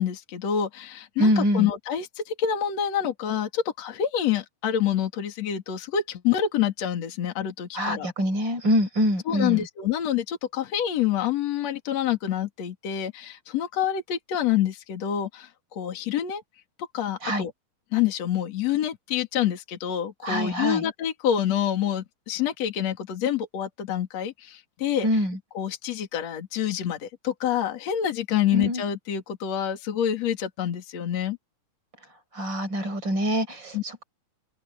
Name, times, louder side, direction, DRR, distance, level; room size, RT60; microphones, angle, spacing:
voice 1, 0.0-8.1 9.3-16.4 16.8-17.5 17.9-25.1 25.6-31.4 33.7-33.8, left 10 dB, 50° left, 3.4 m, -27 dB
voice 2, 1.2-1.7 7.7-9.7 17.2-17.5 20.2-20.8 25.0-25.4 28.5-28.8 32.3-34.0, equal, 30° right, 5.9 m, -25 dB
open air
omnidirectional pair, 4.1 m